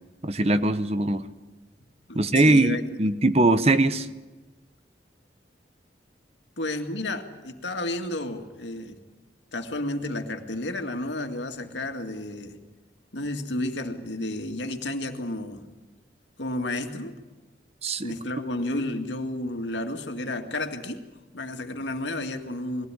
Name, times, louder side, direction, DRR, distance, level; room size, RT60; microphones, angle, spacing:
voice 1, 0.2-1.2 2.1-4.1 17.8-18.1, right 2 dB, 35° right, 11 dB, 0.9 m, -21 dB
voice 2, 1.8-2.8 6.6-9.0 9.5-12.6 13.1-15.6 16.4-17.1 18.0-21.0 21.3-22.9, left 1 dB, 80° left, 5 dB, 2.1 m, -32 dB
21.0 x 16.5 x 9.8 m, 1.2 s
head